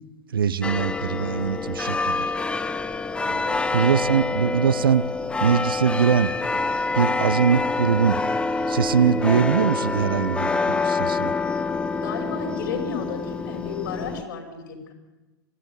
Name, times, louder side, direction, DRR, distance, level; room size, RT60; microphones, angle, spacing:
voice 1, 0.3-2.3 3.7-5.0 5.4-6.3 7.0-8.2 8.7-11.3, right 7 dB, 70° right, 18 dB, 0.7 m, -22 dB
sound 1, 0.6-14.2, left 3 dB, 10° left, 0.9 m, -26 dB
voice 2, 3.2-4.0 12.0-14.9, left 5 dB, 60° left, 5 dB, 5.3 m, -33 dB
22.5 x 14.0 x 9.6 m, 1.1 s
figure-of-eight pair, 100°, 12 cm